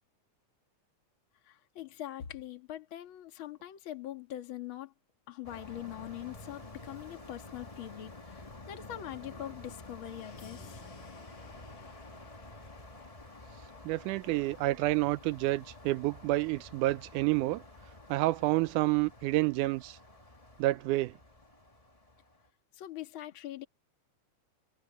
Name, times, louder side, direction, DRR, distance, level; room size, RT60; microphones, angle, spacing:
voice 1, 1.4-4.9 5.3-10.8 22.7-23.7, left 12 dB, 45° left, 2.1 m, -43 dB
sound 1, 5.4-22.5, left 2 dB, 30° left, 0.6 m, -50 dB
sound 2, 10.0-14.9, left 6 dB, 80° left, 5.4 m, -58 dB
voice 2, 13.9-17.6 18.1-20.0 20.6-21.1, right 18 dB, 80° right, 2.0 m, -29 dB
omnidirectional pair, 3.6 m